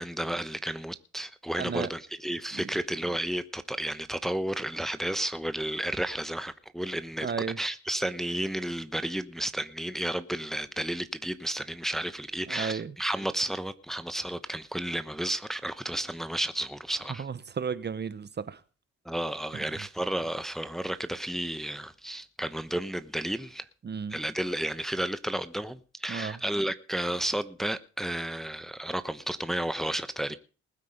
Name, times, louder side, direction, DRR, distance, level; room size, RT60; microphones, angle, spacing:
voice 1, 0.0-17.2 19.0-23.6 24.1-30.4, right 1 dB, ahead, 1.0 m, -32 dB
voice 2, 1.6-1.9 2.5-2.7 7.2-7.6 12.5-12.9 17.2-18.6 19.5-19.6 23.8-24.2 26.1-26.4, right 6 dB, 35° right, 1.0 m, -33 dB
20.0 x 8.5 x 5.2 m
cardioid pair, 90°, 30 cm